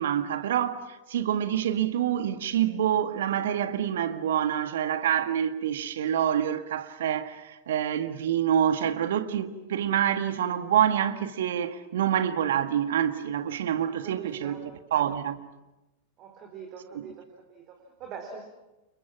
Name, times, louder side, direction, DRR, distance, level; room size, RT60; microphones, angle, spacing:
voice 1, 0.0-15.4 16.9-17.1, right 10 dB, 60° right, 1.7 m, -27 dB
voice 2, 13.8-14.6 16.2-17.2 17.5-18.4, right 6 dB, 35° right, 4.2 m, -42 dB
30.0 x 29.5 x 6.0 m
figure-of-eight pair, 90°, 0 cm